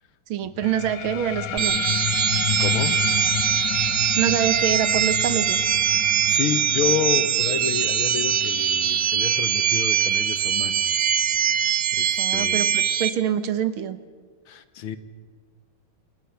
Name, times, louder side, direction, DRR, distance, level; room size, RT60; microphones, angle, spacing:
voice 1, 0.3-2.1 4.2-5.7 12.2-14.0, right 9 dB, 80° right, 12 dB, 1.9 m, -26 dB
sound 1, 0.6-11.7, left 11 dB, 65° left, 1.2 m, -32 dB
sound 2, 1.6-13.1, right 9 dB, 60° right, 0.8 m, -22 dB
voice 2, 2.6-3.0 6.0-11.1 11.4-12.8 14.5-15.0, left 8 dB, 80° left, 12 dB, 1.9 m, -30 dB
28.5 x 20.0 x 5.7 m, 1.5 s
omnidirectional pair, 2.3 m